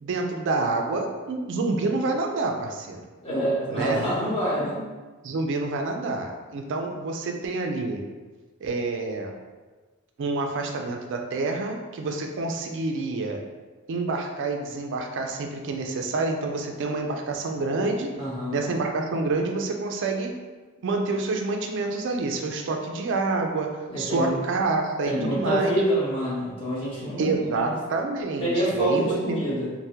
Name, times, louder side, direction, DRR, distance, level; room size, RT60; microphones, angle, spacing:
voice 1, 0.0-3.0 3.7-4.0 5.2-8.0 8.6-9.3 10.2-13.4 13.9-18.1 18.5-20.3 20.8-23.7 24.0-25.8 27.2-29.4, right 3 dB, 60° right, 3 dB, 0.4 m, -27 dB
voice 2, 3.2-4.9 18.1-18.7 23.9-24.4 25.0-27.6 28.4-29.7, right 1 dB, 25° left, -8 dB, 1.0 m, -26 dB
3.4 x 2.1 x 2.7 m, 1.3 s
head